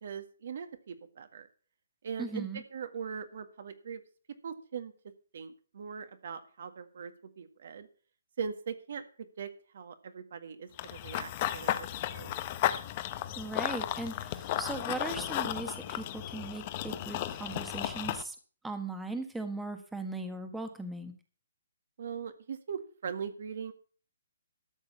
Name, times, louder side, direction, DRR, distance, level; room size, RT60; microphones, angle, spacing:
voice 1, 0.0-1.5 2.0-4.0 4.4-4.9 5.3-7.9 8.4-9.0 9.4-12.3 22.0-23.7, right 6 dB, 60° right, 9 dB, 1.7 m, -40 dB
voice 2, 2.2-2.6 13.3-18.4 18.6-21.1, right 2 dB, 5° right, 6 dB, 1.4 m, -38 dB
Run / Bird vocalization bird call bird song, 10.8-18.2, left 13 dB, 35° left, 0.9 m, -34 dB
13.0 x 6.5 x 7.1 m, 0.40 s
hypercardioid pair, 145°, 0 cm